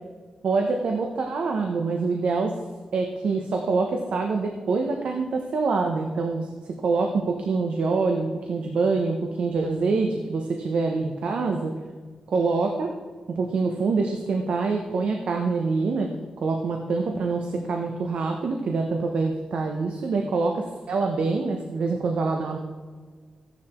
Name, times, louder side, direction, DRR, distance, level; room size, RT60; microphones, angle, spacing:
voice 1, 0.4-2.6 2.9-11.8 12.3-13.0 13.3-22.6, right 4 dB, 90° right, 3 dB, 1.1 m, -25 dB
14.0 x 10.5 x 4.5 m, 1.5 s
wide cardioid pair, 150°, 2 cm